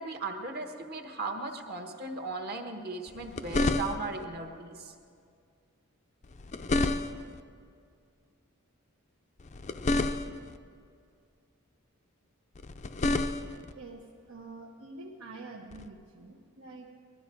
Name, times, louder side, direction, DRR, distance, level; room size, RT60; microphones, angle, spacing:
voice 1, 0.0-4.9, right 3 dB, 45° right, 4 dB, 1.3 m, -37 dB
sound 1, 3.1-4.2 6.2-7.4 9.4-10.6 12.5-13.7 15.7-15.9, left 2 dB, 35° left, 0.5 m, -30 dB
voice 2, 13.7-16.9, right 3 dB, 80° right, -3 dB, 1.2 m, -46 dB
20.5 x 12.5 x 4.6 m, 2.3 s
head